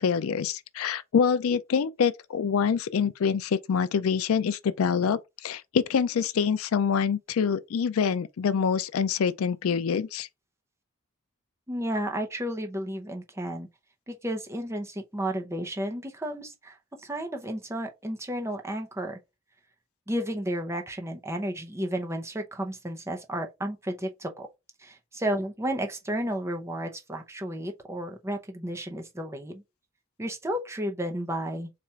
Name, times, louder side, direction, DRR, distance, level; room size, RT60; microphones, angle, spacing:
voice 1, 0.0-10.3, left 6 dB, 75° left, 0.4 m, -26 dB
voice 2, 11.7-13.7 14.1-19.2 20.1-24.5 24.8-29.6 30.2-31.7, right 1 dB, 15° right, 0.6 m, -32 dB
4.2 x 2.4 x 4.4 m
head